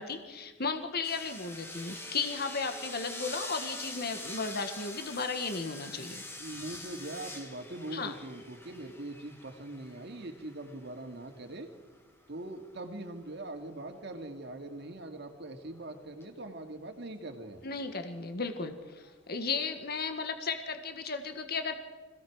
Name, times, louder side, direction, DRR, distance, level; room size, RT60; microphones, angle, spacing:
voice 1, 0.0-6.2 7.9-8.1 17.6-21.7, left 4 dB, 55° left, 7 dB, 1.6 m, -35 dB
sound 1, 1.0-12.4 15.7-16.3 17.4-17.5, left 2 dB, 15° left, 2.0 m, -45 dB
voice 2, 6.4-11.7 12.3-17.6, right 2 dB, 60° right, 5 dB, 2.3 m, -42 dB
25.5 x 17.0 x 6.2 m, 1.3 s
head